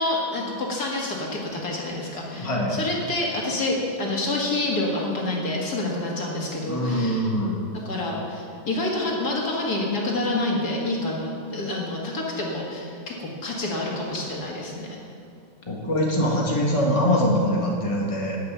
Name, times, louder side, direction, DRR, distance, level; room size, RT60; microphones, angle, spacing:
voice 1, 0.0-7.3 7.9-15.0, left 2 dB, 60° left, -2 dB, 2.6 m, -28 dB
voice 2, 2.4-2.8 6.6-7.6 15.7-18.4, equal, 20° left, -3 dB, 2.1 m, -23 dB
11.0 x 8.1 x 9.4 m, 2.5 s
omnidirectional pair, 1.9 m